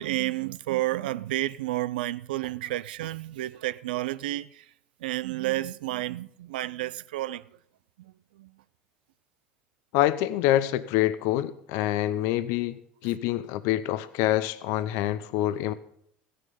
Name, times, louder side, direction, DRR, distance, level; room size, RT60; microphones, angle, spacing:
voice 1, 0.0-4.7 5.0-7.5 8.0-8.5, right 16 dB, 85° right, 0.4 m, -31 dB
voice 2, 9.9-15.7, left 14 dB, 70° left, 0.6 m, -26 dB
14.5 x 10.0 x 5.4 m
hypercardioid pair, 85°, 5 cm